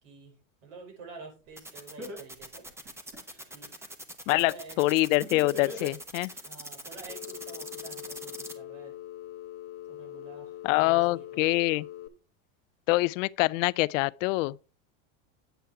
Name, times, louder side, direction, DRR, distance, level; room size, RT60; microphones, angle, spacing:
voice 1, 0.0-2.7 3.5-3.7 4.3-4.8 6.4-8.9 9.9-11.5, right 4 dB, 70° right, 5.1 m, -49 dB
Laughter, 1.5-1.6 2.0-3.4 5.2-6.4, left 1 dB, 40° right, 5.4 m, -40 dB
sound 1, 1.6-8.5, right 1 dB, 5° right, 0.9 m, -42 dB
voice 2, 4.3-6.3 10.6-11.9 12.9-14.6, left 21 dB, 70° left, 0.5 m, -25 dB
Telephone, 7.1-12.1, left 13 dB, 30° left, 1.0 m, -43 dB
9.0 x 8.1 x 3.4 m
supercardioid pair, 140°, 40 cm